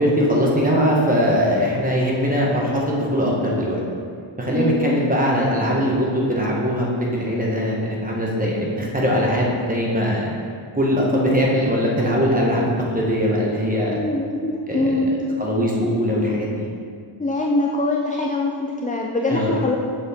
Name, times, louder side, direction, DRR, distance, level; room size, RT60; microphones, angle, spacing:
voice 1, 0.0-3.8 4.4-10.3 10.7-14.0 14.8-14.9 15.4-16.6 19.3-19.5, equal, 15° right, -3 dB, 1.3 m, -21 dB
voice 2, 4.5-5.0 13.9-15.3 17.2-19.8, left 2 dB, 15° left, 0 dB, 0.4 m, -23 dB
7.1 x 6.2 x 3.6 m, 2.3 s
wide cardioid pair, 110°, 50 cm